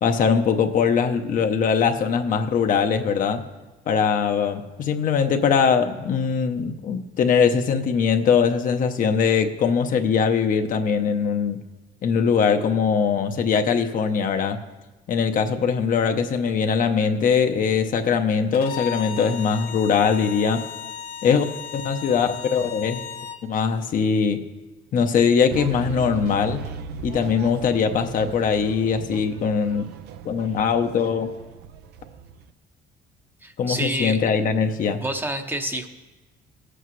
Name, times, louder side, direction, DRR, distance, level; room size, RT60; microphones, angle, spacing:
voice 1, 0.0-3.4 3.9-11.6 12.0-14.6 15.1-20.6 21.2-21.5 21.7-23.0 23.4-24.4 24.9-26.6 27.0-29.8 30.2-31.3 33.6-35.0, left 6 dB, 55° left, 6 dB, 0.8 m, -21 dB
Bowed string instrument, 18.5-23.4, left 8 dB, 90° left, 1.3 m, -35 dB
sound 1, 25.5-32.5, right 7 dB, 80° right, 0.6 m, -37 dB
voice 2, 33.4-34.2 35.0-35.9, right 1 dB, 10° right, 6 dB, 0.7 m, -28 dB
17.0 x 8.1 x 3.1 m, 1.2 s
cardioid pair, 110°, 17 cm